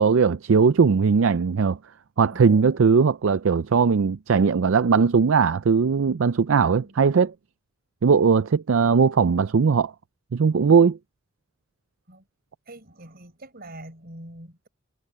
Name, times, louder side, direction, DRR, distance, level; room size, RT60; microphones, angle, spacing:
voice 1, 0.0-1.8 2.2-7.3 8.0-9.9 10.3-11.0, right 5 dB, 65° right, 0.5 m, -19 dB
voice 2, 2.3-3.0 6.6-7.0 8.8-9.0 12.1-12.3 12.7-14.7, right 1 dB, 50° right, 5.3 m, -44 dB
head